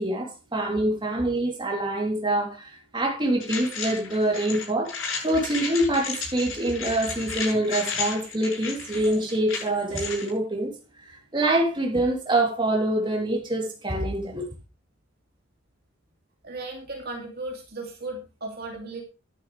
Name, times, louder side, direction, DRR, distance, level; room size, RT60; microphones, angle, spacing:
voice 1, 0.0-10.7 11.0-14.4, right 1 dB, 25° right, 3.3 m, -25 dB
sound 1, 3.4-10.3, left 5 dB, 80° left, 7.8 m, -33 dB
voice 2, 16.4-19.0, right 2 dB, 50° right, 2.8 m, -36 dB
12.0 x 11.0 x 3.3 m
head